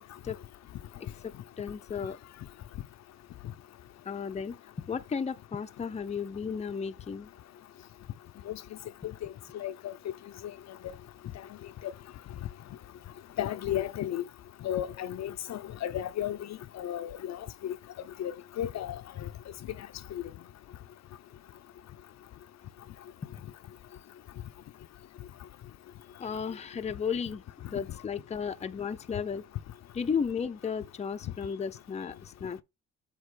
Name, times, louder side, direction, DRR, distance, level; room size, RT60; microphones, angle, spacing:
voice 1, 1.2-2.2 4.1-7.3 26.2-27.4 27.7-29.4 29.9-32.6, left 6 dB, 20° left, 0.6 m, -34 dB
voice 2, 9.5-9.9 10.4-10.5 13.4-14.2 14.6-16.4 16.7-17.8 18.2-19.3, left 11 dB, 60° left, 0.6 m, -33 dB
8.2 x 3.0 x 4.8 m
cardioid pair, 90°, 30 cm